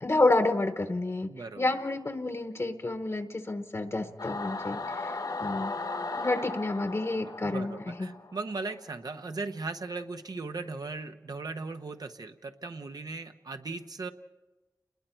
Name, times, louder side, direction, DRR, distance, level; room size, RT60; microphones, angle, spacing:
voice 1, 0.0-1.3 1.6-5.7 6.2-8.1, left 2 dB, 45° left, 7 dB, 1.0 m, -29 dB
voice 2, 1.3-1.6 7.4-14.1, right 3 dB, 75° right, 8 dB, 1.0 m, -38 dB
Singing / Musical instrument, 4.2-8.8, left 3 dB, 90° left, 1.8 m, -36 dB
29.0 x 21.0 x 4.5 m, 1.1 s
wide cardioid pair, 85°, 7 cm